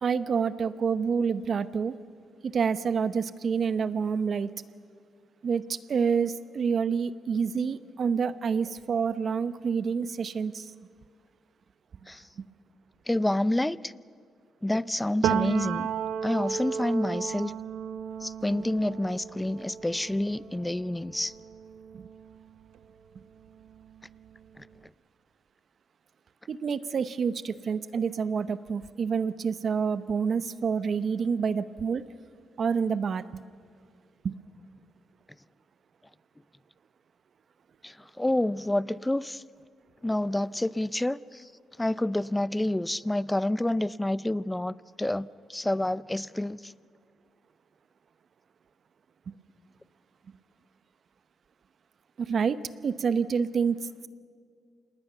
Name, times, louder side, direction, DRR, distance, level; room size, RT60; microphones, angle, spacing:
voice 1, 0.0-2.0 2.4-4.5 5.4-10.7 21.9-22.1 26.5-32.1 32.6-33.4 34.2-34.3 49.3-49.4 52.2-54.1, right 6 dB, 55° right, 14 dB, 0.9 m, -28 dB
voice 2, 13.1-13.9 14.6-15.9 16.2-17.5 18.2-21.3 24.6-24.7 37.8-39.4 40.0-41.5 41.8-46.7, left 1 dB, 10° left, 19 dB, 0.5 m, -28 dB
Piano, 15.2-22.8 23.2-24.7, right 8 dB, 85° right, 0.8 m, -34 dB
27.0 x 20.0 x 7.0 m, 2.2 s
cardioid pair, 90°, 0 cm